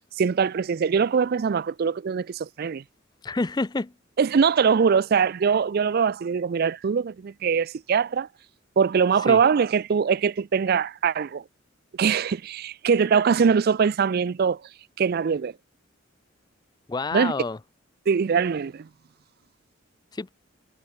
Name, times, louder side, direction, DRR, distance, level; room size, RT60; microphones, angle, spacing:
voice 1, 0.2-2.8 4.2-8.3 8.8-11.4 12.0-14.6 15.0-15.5 17.1-17.3 18.1-18.9, right 6 dB, 50° right, 0.4 m, -22 dB
voice 2, 3.2-3.9 9.3-9.4 16.9-17.6 20.1-20.3, left 3 dB, 20° left, 0.4 m, -28 dB
head